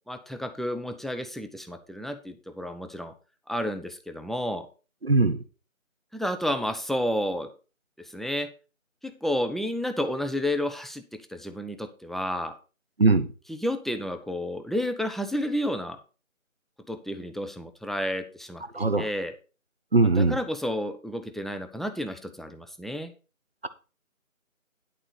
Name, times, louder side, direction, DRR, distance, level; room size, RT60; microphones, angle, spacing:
voice 1, 0.1-3.1 3.5-4.7 6.1-7.5 8.0-8.5 9.0-12.5 13.5-16.0 16.9-19.3 20.0-23.1, equal, ahead, 7 dB, 0.4 m, -31 dB
voice 2, 5.0-5.4 13.0-13.3 18.7-19.0 19.9-20.4, right 3 dB, 45° right, 11 dB, 0.9 m, -20 dB
11.0 x 4.2 x 6.6 m, 0.34 s
figure-of-eight pair, 165°, 41 cm